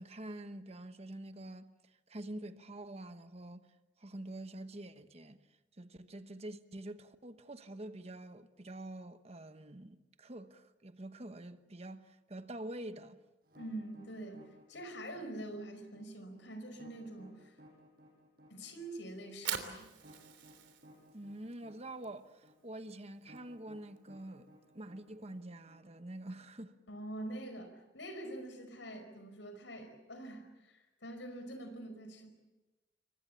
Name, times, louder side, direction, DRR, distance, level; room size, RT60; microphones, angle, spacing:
voice 1, 0.0-3.7 4.0-5.4 5.8-13.2 21.1-26.7, right 1 dB, 35° right, 1.1 m, -46 dB
sound 1, 13.4-26.3, equal, 50° right, 7.9 m, -60 dB
voice 2, 13.6-17.6 18.5-19.8 26.9-32.3, right 1 dB, 80° left, 5.2 m, -45 dB
Fire, 19.2-25.4, right 8 dB, 80° right, 3.2 m, -46 dB
28.0 x 23.5 x 7.1 m
head